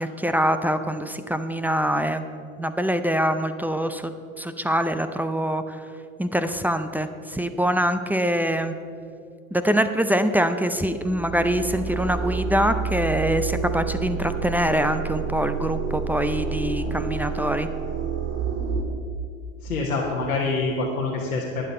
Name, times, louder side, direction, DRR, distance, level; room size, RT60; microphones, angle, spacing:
voice 1, 0.0-2.2 2.6-4.1 4.4-5.8 6.2-8.7 9.5-17.7, equal, 5° right, 10 dB, 0.5 m, -24 dB
sound 1, 10.8-18.8, right 5 dB, 35° right, 1.9 m, -29 dB
voice 2, 19.6-21.6, left 3 dB, 85° left, -2 dB, 1.3 m, -26 dB
11.5 x 9.2 x 5.5 m, 2.4 s
figure-of-eight pair, 75°, 41 cm